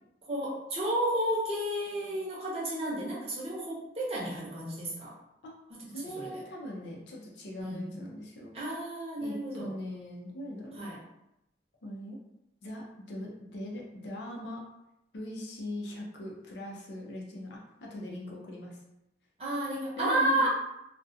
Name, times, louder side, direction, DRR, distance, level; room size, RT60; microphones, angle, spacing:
voice 1, 0.3-5.2 5.7-6.4 7.6-8.0 8.5-9.7 10.7-11.0 19.4-20.5, right 1 dB, 35° right, -6 dB, 0.7 m, -32 dB
voice 2, 5.9-8.5 9.2-10.9 11.8-12.2 12.6-14.6 15.1-18.8 20.0-20.5, equal, 80° left, -2 dB, 0.5 m, -40 dB
2.3 x 2.1 x 2.6 m, 0.85 s
head